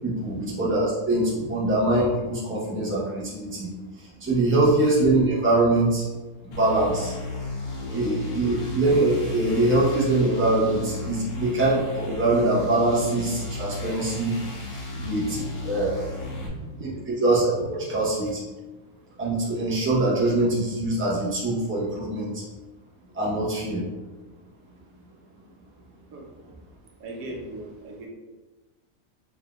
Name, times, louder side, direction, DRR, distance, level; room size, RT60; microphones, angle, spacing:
voice 1, 0.0-3.7 4.0-6.1 6.4-7.1 7.9-14.3 15.0-15.4 15.7-15.9 16.8-17.6 17.9-18.4 19.2-22.4 23.1-23.9, right 2 dB, 10° right, -7 dB, 0.8 m, -23 dB
sound 1, 6.5-16.5, left 2 dB, 90° left, 1.4 m, -34 dB
voice 2, 7.8-8.1 14.9-15.9 16.3-16.9 17.6-17.7 26.1-26.3 27.0-28.1, right 2 dB, 80° right, 0 dB, 1.2 m, -39 dB
4.2 x 3.5 x 2.4 m, 1.2 s
omnidirectional pair, 1.5 m